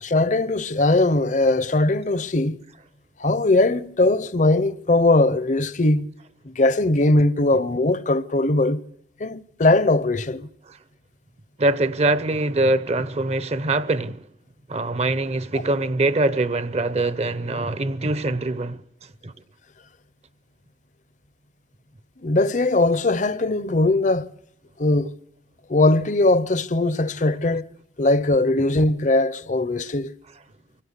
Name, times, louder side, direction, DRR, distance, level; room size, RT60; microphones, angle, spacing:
voice 1, 0.0-2.6 3.2-6.1 6.4-8.8 9.2-10.5 22.2-24.3 24.8-25.1 25.7-27.7 28.0-30.1, left 2 dB, 40° left, 0.8 m, -20 dB
voice 2, 11.6-14.2 14.7-18.8 19.2-19.3, right 2 dB, 35° right, 0.8 m, -23 dB
25.0 x 16.5 x 8.2 m
head